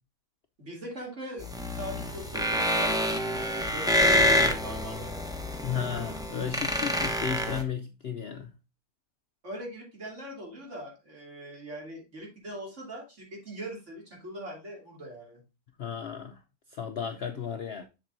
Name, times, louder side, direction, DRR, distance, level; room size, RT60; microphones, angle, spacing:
voice 1, 0.6-5.3 9.4-15.4, right 1 dB, 50° right, 3.1 m, -41 dB
sound 1, 1.4-7.6, left 1 dB, 5° right, 0.5 m, -27 dB
voice 2, 5.6-8.5 15.8-16.4 16.7-17.9, left 7 dB, 55° left, 0.7 m, -34 dB
7.5 x 6.8 x 2.5 m
omnidirectional pair, 1.6 m